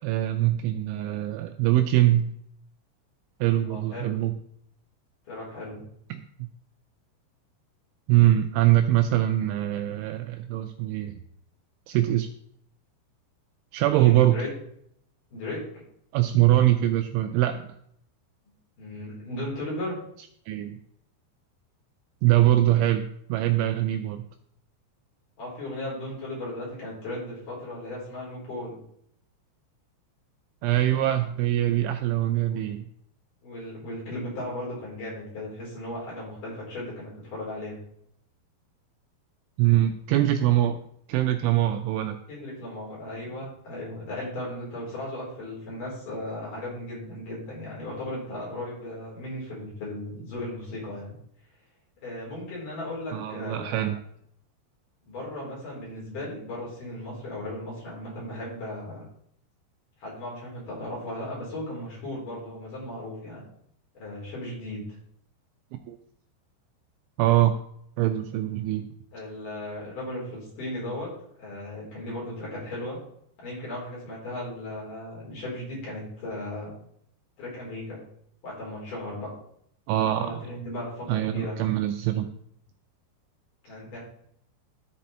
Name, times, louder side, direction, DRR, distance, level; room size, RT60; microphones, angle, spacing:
voice 1, 0.0-2.3 3.4-4.3 6.1-6.5 8.1-11.2 11.9-12.3 13.7-14.4 16.1-17.7 20.5-20.8 22.2-24.2 30.6-32.8 39.6-40.8 41.1-42.2 53.1-54.0 65.9-66.0 67.2-67.6 68.0-68.9 79.9-80.3 81.1-82.3, right 13 dB, 85° right, 6 dB, 2.8 m, -23 dB
voice 2, 3.7-4.2 5.3-5.8 13.9-14.5 15.3-15.8 18.8-20.0 25.4-28.8 32.5-32.6 33.4-37.8 42.3-51.1 52.0-53.8 55.1-59.0 60.0-63.4 64.0-64.8 69.1-71.1 71.4-73.0 73.4-76.7 77.4-78.0 78.4-79.3 80.0-81.7 83.7-84.0, left 1 dB, 45° left, -5 dB, 5.2 m, -36 dB
13.5 x 5.3 x 4.3 m, 0.69 s
omnidirectional pair, 5.8 m